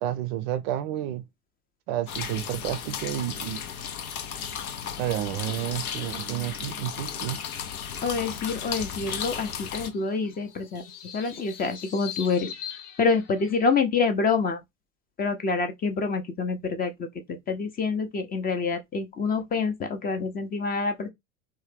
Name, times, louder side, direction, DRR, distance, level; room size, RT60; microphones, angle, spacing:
voice 1, 0.0-1.2 1.9-3.6 5.0-7.4, right 12 dB, 45° right, 0.5 m, -30 dB
sound 1, 2.1-9.9, left 8 dB, 75° left, 0.7 m, -35 dB
voice 2, 8.0-10.8 11.1-12.5 13.0-14.6 15.2-21.1, left 4 dB, 20° left, 0.6 m, -27 dB
sound 2, 9.8-13.8, left 9 dB, 50° left, 0.9 m, -42 dB
3.1 x 2.2 x 3.1 m
figure-of-eight pair, 80°, 44 cm